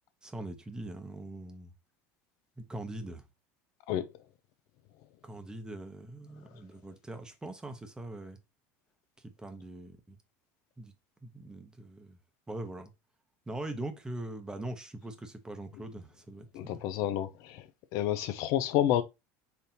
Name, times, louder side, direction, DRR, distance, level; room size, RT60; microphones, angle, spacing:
voice 1, 0.2-1.7 2.7-3.2 5.2-8.4 9.2-10.2 10.8-10.9 11.2-12.2 12.5-12.9 13.5-16.8, right 1 dB, 10° right, 0.8 m, -42 dB
voice 2, 16.5-17.6 17.9-19.0, left 12 dB, 65° left, 0.5 m, -29 dB
4.1 x 3.4 x 2.7 m
supercardioid pair, 110°, 6 cm